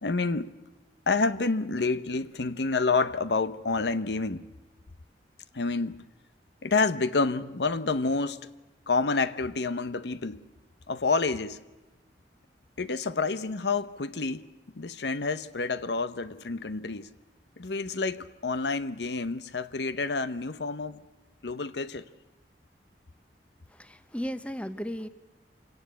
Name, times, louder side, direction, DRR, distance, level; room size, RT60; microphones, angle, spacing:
voice 1, 0.0-0.5 1.1-4.4 5.5-6.0 6.6-8.5 8.9-10.4 10.9-11.6 12.8-14.5 14.7-17.1 17.6-21.0 21.4-22.0, left 3 dB, 75° left, 0.8 m, -28 dB
voice 2, 23.7-25.1, equal, 5° left, 0.9 m, -35 dB
27.0 x 17.5 x 8.3 m
head